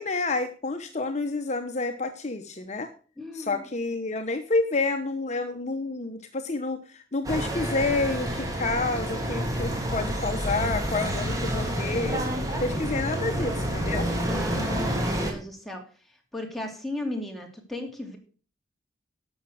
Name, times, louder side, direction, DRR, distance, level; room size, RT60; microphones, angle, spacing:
voice 1, 0.0-2.9 3.3-12.2 12.6-14.1, left 3 dB, 40° left, 7 dB, 1.0 m, -29 dB
voice 2, 3.2-3.6 14.2-15.8 16.3-18.2, left 1 dB, ahead, 1 dB, 2.7 m, -35 dB
sound 1, 7.2-15.3, equal, 20° right, 2.9 m, -28 dB
12.0 x 7.2 x 6.4 m, 0.39 s
head